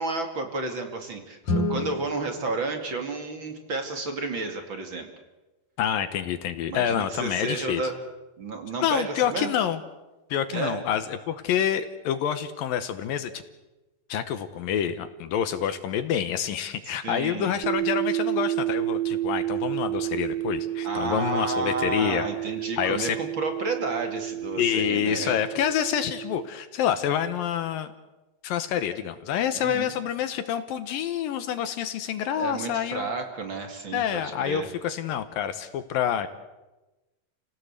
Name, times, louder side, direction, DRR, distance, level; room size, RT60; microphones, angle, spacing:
voice 1, 0.0-5.1 6.6-8.0 8.4-9.5 10.5-10.8 16.8-17.5 20.8-25.4 29.6-29.9 32.4-34.7, right 3 dB, 35° right, 5 dB, 2.5 m, -31 dB
Guitar, 1.4-4.0, left 2 dB, 55° left, 3.8 m, -31 dB
voice 2, 5.8-7.8 8.8-9.8 10.3-13.4 14.1-22.3 22.8-23.2 24.6-27.9 28.4-33.1 33.9-36.3, left 9 dB, 70° left, 10 dB, 2.6 m, -27 dB
sound 1, 17.6-26.5, right 13 dB, 85° right, 2.9 m, -30 dB
28.5 x 17.5 x 8.1 m, 1.1 s
omnidirectional pair, 4.5 m